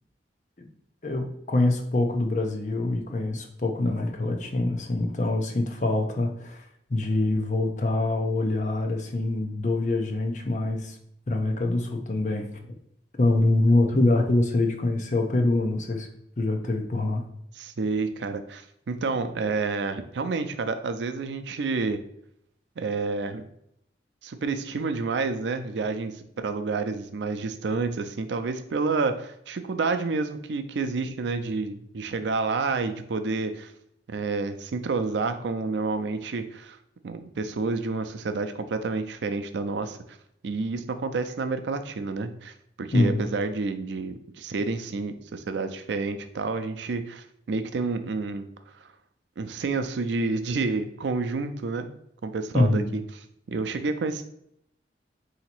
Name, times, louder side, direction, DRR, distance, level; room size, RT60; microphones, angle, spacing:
voice 1, 1.0-6.6 6.9-11.0 11.3-12.5 13.2-16.1 16.4-17.2 42.9-43.2 52.5-52.9, left 2 dB, 45° left, 3 dB, 0.6 m, -25 dB
voice 2, 17.6-22.0 22.8-23.5 24.2-33.7 34.1-36.8 37.0-40.0 40.4-48.5 48.8-48.9 49.4-51.9 52.2-53.0 53.5-54.2, right 4 dB, 90° right, 9 dB, 0.4 m, -29 dB
4.0 x 2.8 x 4.3 m, 0.75 s
head